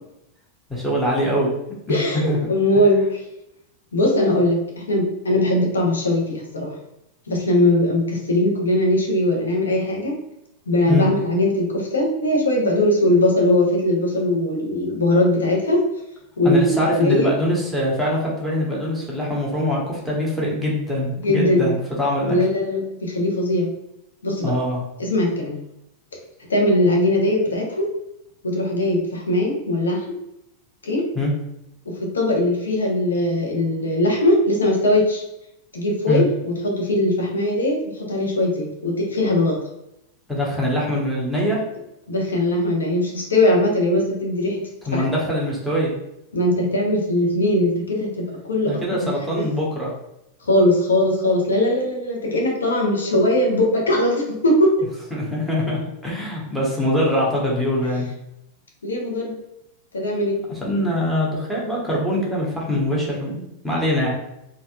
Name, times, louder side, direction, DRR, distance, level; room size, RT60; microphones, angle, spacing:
voice 1, 0.7-1.5 1.9-2.4 10.9-11.1 16.4-22.4 24.4-24.8 31.1-31.3 36.0-36.2 40.3-41.6 44.9-45.9 48.7-49.9 55.1-58.1 60.5-64.1, equal, ahead, -5 dB, 1.2 m, -23 dB
voice 2, 1.9-3.2 3.9-6.7 7.3-10.2 10.7-15.9 16.4-17.3 21.2-21.7 22.3-23.7 24.2-24.5 25.0-25.6 26.4-27.9 28.4-30.1 30.8-31.1 31.8-35.2 35.7-39.6 42.1-44.6 44.9-45.1 46.3-48.1 48.4-49.4 50.4-54.7 58.8-59.4 59.9-60.4, left 1 dB, 70° left, 0 dB, 0.9 m, -20 dB
4.2 x 2.5 x 2.4 m, 0.83 s
figure-of-eight pair, 90°, 0 cm